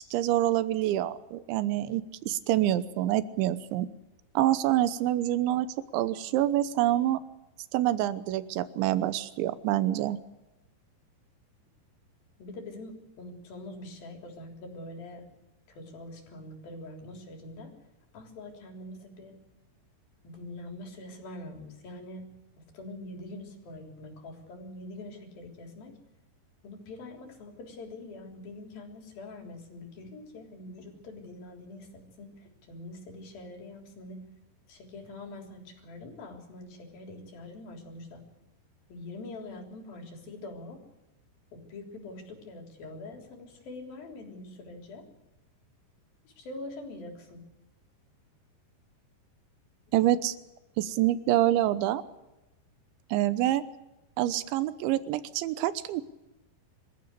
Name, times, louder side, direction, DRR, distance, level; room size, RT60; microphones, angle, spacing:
voice 1, 0.0-3.9 4.3-5.7 5.9-7.2 7.7-10.2 49.9-50.4 50.8-52.0 53.1-53.6 54.2-56.0, right 13 dB, 85° right, 14 dB, 3.3 m, -26 dB
voice 2, 12.4-15.2 15.7-17.7 18.1-19.4 20.2-22.3 22.6-25.9 26.6-34.2 34.7-38.2 38.9-40.8 41.5-45.0 46.2-47.4, left 2 dB, 55° left, 3 dB, 5.1 m, -44 dB
26.0 x 15.0 x 8.2 m, 1.0 s
omnidirectional pair, 5.3 m